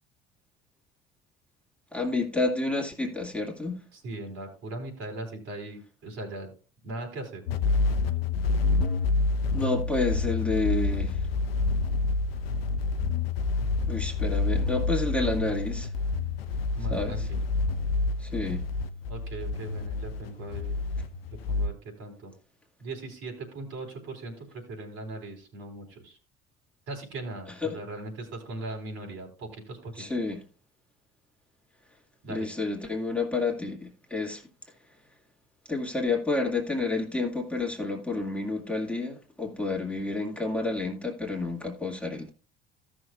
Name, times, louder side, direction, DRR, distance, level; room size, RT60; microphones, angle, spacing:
voice 1, 1.9-3.8 9.5-11.2 13.9-15.9 16.9-17.3 18.2-18.7 27.6-27.8 30.0-30.4 32.3-34.4 35.7-42.3, left 3 dB, 5° left, 2.1 m, -30 dB
voice 2, 3.9-6.5 6.8-7.4 16.8-17.4 19.1-20.7 21.5-22.3 22.8-26.2 26.9-30.0 32.2-32.5, right 2 dB, 55° right, 3.8 m, -39 dB
sound 1, 7.5-21.7, left 3 dB, 75° left, 0.7 m, -28 dB
16.5 x 6.3 x 2.3 m
figure-of-eight pair, 60°, 29 cm